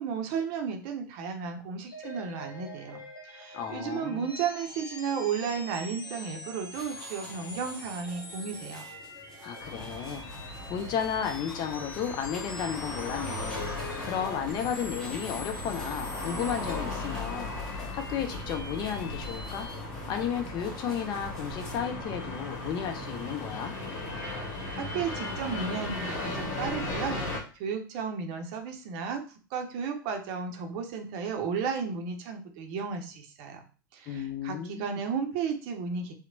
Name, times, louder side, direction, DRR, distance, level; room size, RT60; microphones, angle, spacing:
voice 1, 0.0-8.8 24.7-27.2 27.6-29.2 29.5-33.6 33.9-36.1, right 6 dB, 50° right, 5 dB, 0.5 m, -33 dB
sound 1, 1.9-19.7, left 2 dB, 90° left, 0.6 m, -44 dB
voice 2, 3.5-4.3 9.4-10.3 10.7-13.6 14.0-19.7 20.1-23.7 34.1-35.0, left 8 dB, 40° left, 6 dB, 0.5 m, -33 dB
sound 2, 6.7-21.8, left 1 dB, 5° left, 0.7 m, -49 dB
sound 3, 9.6-27.4, left 2 dB, 55° left, 1.0 m, -37 dB
2.9 x 2.0 x 2.6 m, 0.37 s
figure-of-eight pair, 85°, 12 cm